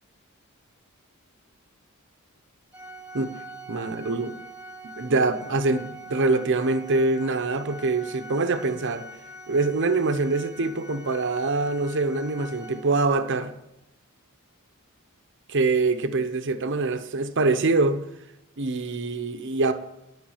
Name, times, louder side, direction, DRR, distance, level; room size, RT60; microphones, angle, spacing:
Organ, 2.7-13.3, right 1 dB, 5° right, 1.1 m, -43 dB
voice 1, 3.7-4.4 5.0-9.1 9.5-13.5 15.5-18.0 18.6-19.7, right 3 dB, 55° right, 0.9 m, -24 dB
12.0 x 6.0 x 7.2 m
head